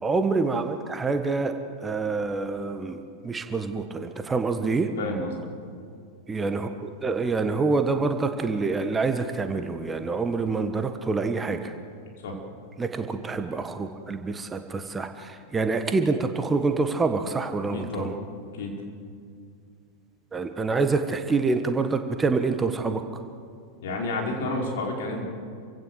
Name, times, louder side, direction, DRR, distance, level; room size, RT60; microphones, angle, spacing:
voice 1, 0.0-4.9 6.3-6.7 7.0-11.7 12.8-18.1 20.3-23.0, right 4 dB, 15° right, 7 dB, 1.4 m, -26 dB
voice 2, 5.0-5.3 12.2-12.3 17.7-18.1 18.5-18.7 23.8-25.2, left 2 dB, 55° left, 0 dB, 4.9 m, -30 dB
27.5 x 16.5 x 8.0 m, 2.3 s
figure-of-eight pair, 90°, 0 cm